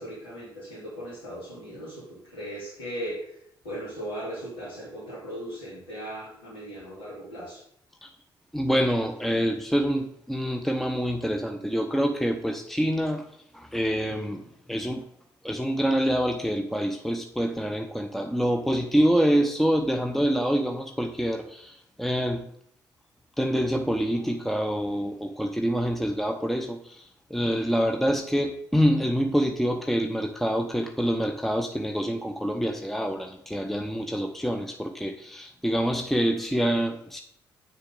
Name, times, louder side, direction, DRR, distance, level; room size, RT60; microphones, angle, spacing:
voice 1, 0.0-3.4 3.6-7.6, equal, 80° left, -10 dB, 3.3 m, -38 dB
voice 2, 8.5-13.3 13.5-15.0 15.4-22.5 23.4-37.2, equal, ahead, 5 dB, 0.8 m, -26 dB
8.3 x 6.6 x 3.8 m, 0.72 s
figure-of-eight pair, 40°, 12 cm